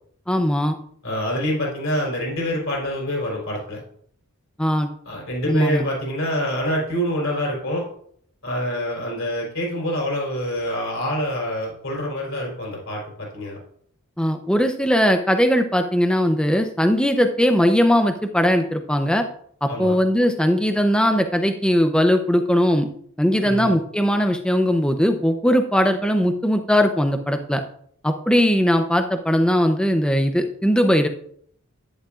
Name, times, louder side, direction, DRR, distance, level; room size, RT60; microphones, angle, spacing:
voice 1, 0.3-0.8 4.6-4.9 5.5-5.8 14.2-19.2 19.6-22.9 23.2-27.6 28.0-31.1, equal, 5° left, 6 dB, 0.6 m, -19 dB
voice 2, 1.0-3.8 5.1-7.8 8.4-13.6 19.7-20.0 23.4-23.7, equal, 65° left, -3 dB, 3.7 m, -26 dB
11.5 x 10.0 x 2.5 m, 0.62 s
head